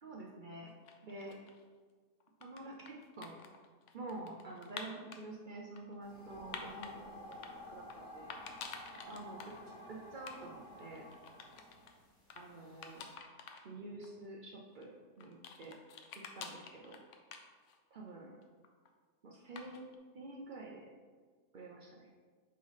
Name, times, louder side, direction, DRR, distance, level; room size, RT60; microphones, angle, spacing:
voice 1, 0.0-0.7 1.0-1.4 2.4-3.4 3.9-8.4 9.1-9.4 9.9-11.1 12.4-13.0 13.6-15.8 16.3-17.0 17.9-18.3 19.2-19.9 20.1-20.9 21.5-22.1, right 2 dB, 80° right, -2 dB, 0.4 m, -48 dB
sound 1, 0.7-1.6 2.2-5.2 5.8-6.9 7.3-8.0 8.3-9.6 9.8-9.9 10.2-10.4 10.6-11.9 12.3-12.4 12.8-13.6 14.0-14.1 14.8-17.9 18.2-18.9 19.6-20.0, left 6 dB, 65° left, 0.7 m, -49 dB
sound 2, 6.0-13.1, left 1 dB, 35° left, 1.1 m, -52 dB
5.9 x 3.1 x 5.5 m, 1.5 s
omnidirectional pair, 1.7 m